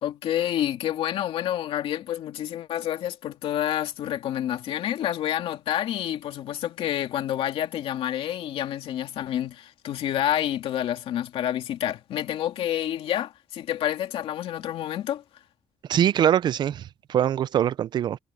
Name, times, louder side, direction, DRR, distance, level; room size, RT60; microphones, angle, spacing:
voice 1, 0.0-15.2, left 11 dB, 70° left, 2.5 m, -28 dB
voice 2, 15.9-18.2, right 10 dB, 50° right, 0.4 m, -23 dB
cardioid pair, 150°, 10 cm